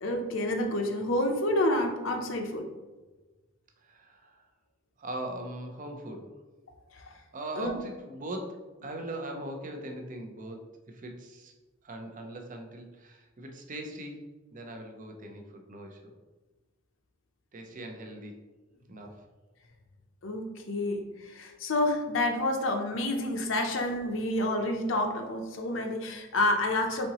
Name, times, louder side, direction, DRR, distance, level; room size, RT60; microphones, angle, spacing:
voice 1, 0.0-2.7 7.6-7.8 20.2-21.0 21.4-27.1, left 1 dB, 65° left, 3 dB, 0.6 m, -28 dB
voice 2, 3.8-4.4 5.0-6.3 7.3-11.5 11.8-14.2 14.5-16.1 17.5-18.4 18.9-19.2, right 1 dB, 40° right, 4 dB, 0.6 m, -40 dB
4.3 x 3.8 x 2.9 m, 1.2 s
head